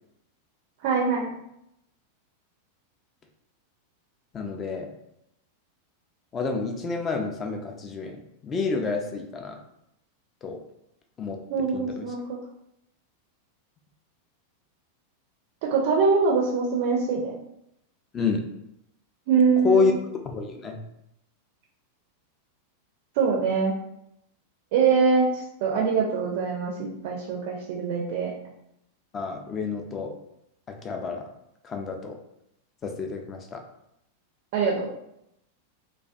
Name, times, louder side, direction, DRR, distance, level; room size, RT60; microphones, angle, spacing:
voice 1, 0.8-1.3 11.5-12.4 15.7-17.3 19.3-19.9 23.2-23.8 24.7-28.3 34.5-34.9, right 5 dB, 50° right, -1 dB, 0.4 m, -23 dB
voice 2, 4.3-4.9 6.3-8.2 8.4-9.6 10.4-10.6 11.2-11.4 11.7-12.1 18.1-18.4 19.6-19.9 20.2-20.8 29.1-30.2 30.8-31.2 31.6-32.2 32.8-33.6, left 4 dB, 25° left, 4 dB, 0.3 m, -28 dB
2.3 x 2.1 x 2.5 m, 0.82 s
figure-of-eight pair, 90°, 0 cm